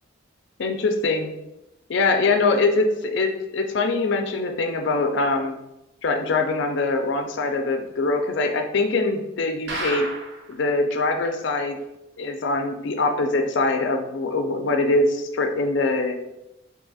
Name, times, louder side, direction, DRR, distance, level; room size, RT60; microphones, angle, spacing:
voice 1, 0.6-1.3 1.9-5.6 6.0-10.1 10.5-11.8 12.2-16.2, left 3 dB, 60° left, 5 dB, 0.4 m, -23 dB
sound 1, 9.7-10.5 10.9-11.0 11.2-11.3 11.8-11.9, right 2 dB, 60° right, 0.5 m, -31 dB
3.9 x 2.7 x 2.3 m, 0.88 s
head